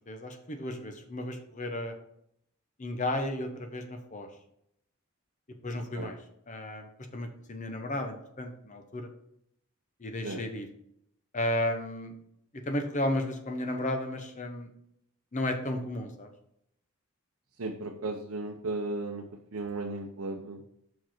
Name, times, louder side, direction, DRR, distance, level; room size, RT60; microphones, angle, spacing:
voice 1, 0.1-1.9 2.8-4.3 5.6-6.2 6.5-9.1 10.0-10.7 11.3-12.1 12.7-14.7 15.3-16.3, left 1 dB, 35° left, 5 dB, 0.8 m, -33 dB
voice 2, 5.8-6.1 10.2-10.4 17.6-19.2 19.5-20.6, right 2 dB, 75° right, 1 dB, 0.7 m, -35 dB
6.1 x 4.9 x 4.4 m, 0.73 s
head